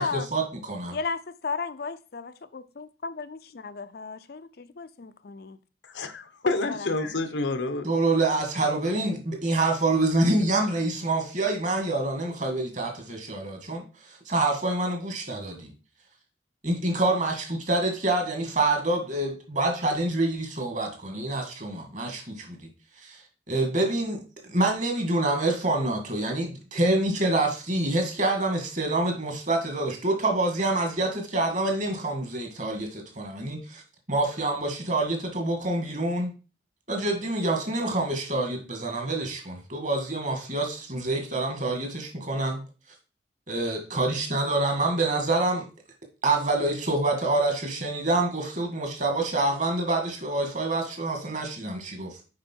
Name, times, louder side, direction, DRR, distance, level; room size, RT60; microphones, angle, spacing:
voice 1, 0.0-1.0 7.9-15.7 16.6-22.6 23.0-23.2 23.5-24.2 24.5-33.8 34.1-36.3 36.9-42.6 43.5-45.7 46.2-52.2, right 2 dB, 45° right, 1.9 m, -26 dB
voice 2, 1.4-5.6 6.4-6.8, left 4 dB, 60° left, 0.6 m, -34 dB
voice 3, 5.8-7.9, left 2 dB, 85° left, 1.0 m, -28 dB
7.7 x 5.3 x 4.5 m
head